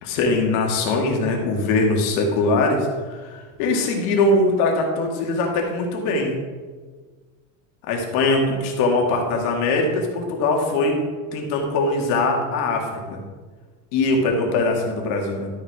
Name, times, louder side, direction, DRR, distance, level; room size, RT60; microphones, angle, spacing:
voice 1, 0.0-2.9 3.2-6.4 7.9-11.0 11.3-13.2 13.9-15.5, left 2 dB, 85° left, 1 dB, 2.3 m, -21 dB
12.5 x 5.7 x 4.9 m, 1.4 s
cardioid pair, 160°, 40 cm